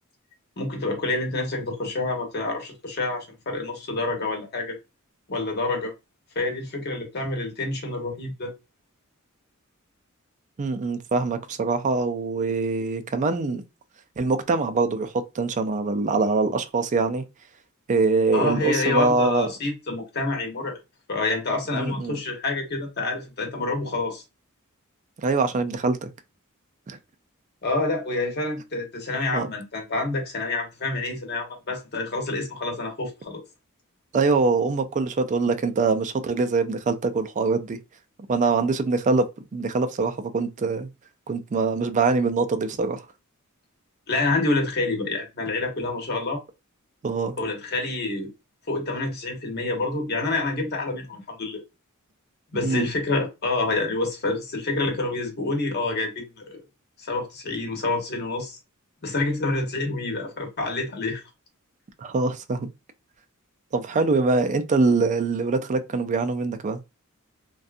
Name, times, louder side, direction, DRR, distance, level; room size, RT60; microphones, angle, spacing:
voice 1, 0.6-4.8 5.3-5.9 6.4-8.5 18.3-20.8 21.1-24.2 27.6-33.4 44.1-46.4 47.4-48.3 48.7-51.6 52.5-56.6 57.0-58.6 59.0-61.2, left 2 dB, 50° left, 0.8 m, -27 dB
voice 2, 10.6-13.6 14.2-17.2 17.9-19.5 21.7-22.2 25.2-26.1 26.9-27.0 29.3-29.5 34.1-37.8 38.3-39.2 39.5-40.9 41.3-43.0 47.0-47.3 52.6-52.9 62.0-62.7 63.7-66.8, right 3 dB, 35° right, 0.3 m, -23 dB
2.6 x 2.2 x 2.4 m
head